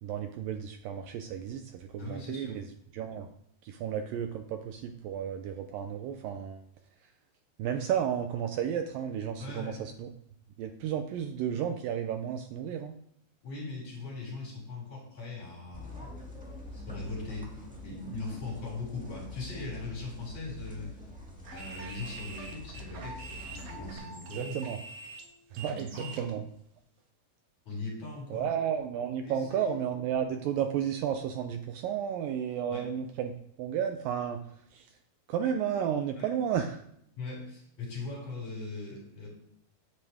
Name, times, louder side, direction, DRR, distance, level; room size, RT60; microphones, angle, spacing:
voice 1, 0.0-2.7 2.9-3.3 3.6-6.6 7.6-10.1 10.6-13.0 24.3-24.8 25.5-25.9 26.2-26.4 28.3-34.4 34.7-34.9 35.3-36.8, right 8 dB, 75° right, 6 dB, 2.2 m, -32 dB
voice 2, 2.0-2.6 9.4-9.8 13.4-16.2 16.7-20.9 21.5-24.6 25.7-26.3 27.7-28.5 29.2-29.8 32.7-32.9 36.2-36.3 37.2-39.3, left 3 dB, 50° left, -4 dB, 7.5 m, -40 dB
sound 1, 15.7-23.9, left 2 dB, 5° right, 1.1 m, -46 dB
sound 2, 21.5-26.3, right 3 dB, 55° right, 2.7 m, -45 dB
16.0 x 11.0 x 3.6 m, 0.74 s
omnidirectional pair, 4.4 m